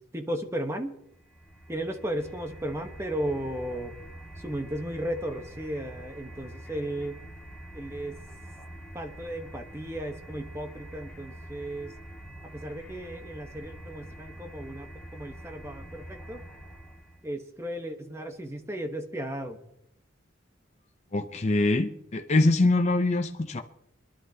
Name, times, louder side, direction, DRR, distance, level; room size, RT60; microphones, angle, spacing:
voice 1, 0.1-1.0 1.7-3.9 4.4-7.2 7.7-8.2 8.9-11.9 12.4-16.4 17.2-19.6, right 1 dB, 15° right, 1.1 m, -35 dB
sound 1, 1.1-17.3, right 1 dB, 5° left, 2.2 m, -45 dB
voice 2, 21.1-23.6, left 2 dB, 35° left, 0.6 m, -24 dB
25.0 x 11.5 x 2.9 m
head